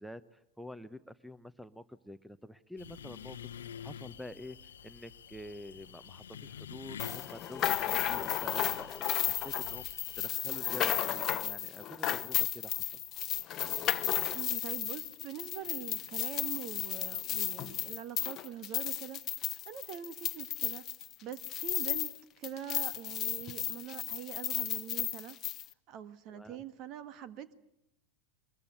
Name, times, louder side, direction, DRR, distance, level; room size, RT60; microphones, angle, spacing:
voice 1, 0.0-13.0 26.3-26.6, left 1 dB, ahead, 0.9 m, -48 dB
sound 1, 2.8-10.3, left 9 dB, 75° left, 0.9 m, -48 dB
sound 2, 7.0-22.2 22.4-25.7, left 11 dB, 35° left, 1.0 m, -34 dB
voice 2, 14.3-20.8 21.2-25.4 25.9-27.5, right 10 dB, 45° right, 1.6 m, -44 dB
23.5 x 21.5 x 9.3 m
figure-of-eight pair, 90°, 0 cm